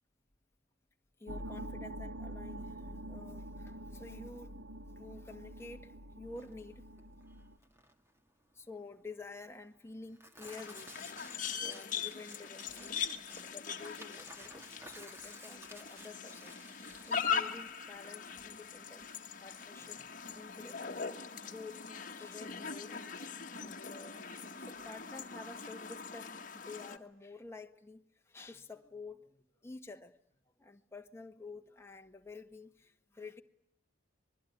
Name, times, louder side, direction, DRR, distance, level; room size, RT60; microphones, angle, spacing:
voice 1, 1.2-4.5 4.9-6.8 8.5-10.9 11.6-13.0 13.3-16.8 17.1-19.1 19.4-20.0 20.3-20.8 21.5-30.1 30.6-33.4, left 3 dB, 10° left, 4 dB, 1.5 m, -50 dB
sound 1, 1.3-7.6, right 1 dB, 80° right, 2.3 m, -46 dB
Tearing, 6.3-20.5, equal, 10° right, 2.0 m, -55 dB
sound 2, 10.4-27.0, left 6 dB, 40° left, 1.5 m, -41 dB
25.5 x 21.5 x 9.5 m, 0.73 s
head